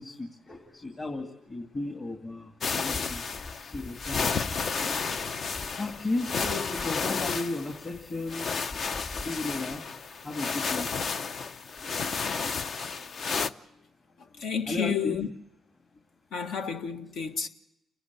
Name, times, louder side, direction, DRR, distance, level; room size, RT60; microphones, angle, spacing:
voice 1, 0.0-3.2 3.6-4.7 5.8-8.5 9.1-9.8 10.2-10.9 14.7-15.2, left 2 dB, 35° left, 2.3 m, -34 dB
sound 1, 2.6-13.5, left 5 dB, 55° left, 0.7 m, -32 dB
voice 2, 14.4-15.3 16.3-17.5, left 7 dB, 80° left, 1.5 m, -31 dB
29.5 x 11.0 x 8.2 m
cardioid pair, 75°, 0 cm